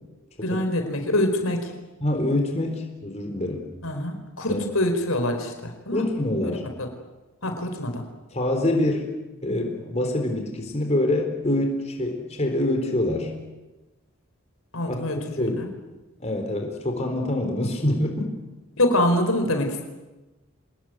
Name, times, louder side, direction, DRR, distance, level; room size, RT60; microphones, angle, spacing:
voice 1, 0.4-1.6 3.8-6.0 6.5-6.9 7.4-8.0 14.7-15.7 18.8-19.8, left 1 dB, 80° left, 5 dB, 4.8 m, -25 dB
voice 2, 2.0-3.7 4.5-4.7 5.9-6.7 8.3-9.1 9.4-13.3 14.9-15.6 16.2-18.3, left 1 dB, 30° left, 3 dB, 4.2 m, -25 dB
27.0 x 20.0 x 9.5 m, 1.1 s
head